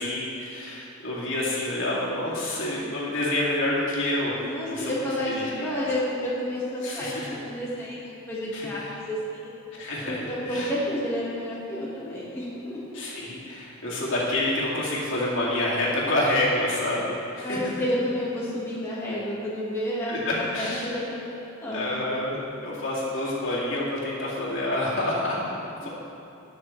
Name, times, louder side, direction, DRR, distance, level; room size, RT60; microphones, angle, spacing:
voice 1, 0.0-4.3 4.7-4.9 5.3-5.7 6.8-7.4 8.5-8.7 9.7-10.7 12.9-17.6 20.1-20.9 21.7-22.3 22.6-25.6 25.8-25.9, left 1 dB, 60° left, -6 dB, 2.4 m, -28 dB
voice 2, 4.4-9.5 10.0-13.0 17.4-21.9 25.8-25.9, left 1 dB, 10° left, -8 dB, 1.7 m, -30 dB
18.5 x 6.4 x 3.2 m, 2.7 s
head